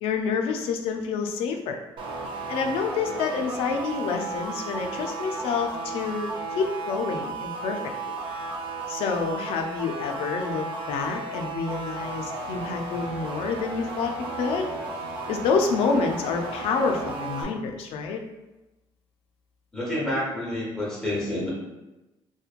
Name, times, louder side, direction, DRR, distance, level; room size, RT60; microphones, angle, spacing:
voice 1, 0.0-1.8 2.5-6.3 6.6-7.8 8.9-14.6 15.3-18.2, left 5 dB, 75° left, 4 dB, 0.4 m, -28 dB
sound 1, 2.0-17.4, right 3 dB, 55° right, 0.4 m, -34 dB
voice 2, 19.7-21.5, left 1 dB, 5° left, -6 dB, 0.9 m, -28 dB
2.9 x 2.1 x 2.4 m, 1.0 s
cardioid pair, 170°, 10 cm